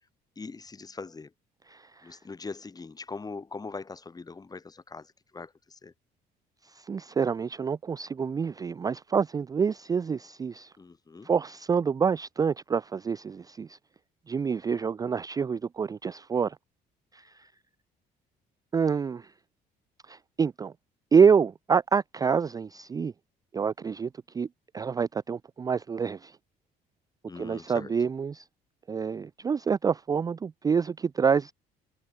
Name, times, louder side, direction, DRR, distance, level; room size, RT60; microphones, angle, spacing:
voice 1, 0.4-1.3 2.0-5.9 10.8-11.3 27.3-27.9, left 4 dB, 20° left, 4.0 m, -41 dB
voice 2, 1.7-2.2 6.6-10.7 11.2-13.8 14.3-16.6 17.1-17.5 18.7-19.3 20.1-20.7 21.1-23.1 23.5-24.1 24.3-24.5 24.7-26.4 27.4-28.5 28.9-31.5, right 6 dB, 20° right, 0.4 m, -27 dB
cardioid pair, 110°, 17 cm